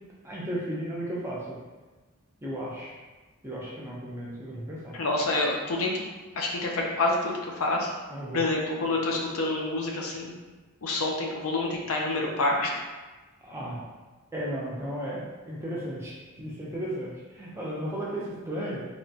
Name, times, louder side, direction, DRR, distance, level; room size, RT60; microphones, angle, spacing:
voice 1, 0.2-1.6 2.4-2.9 3.4-4.9 8.1-8.4 13.4-13.8 14.3-18.8, right 1 dB, 10° right, -6 dB, 0.5 m, -34 dB
voice 2, 4.9-6.1 6.4-7.9 8.3-10.3 10.8-12.7, left 2 dB, 75° left, -1 dB, 0.5 m, -27 dB
2.9 x 2.2 x 2.7 m, 1.3 s
head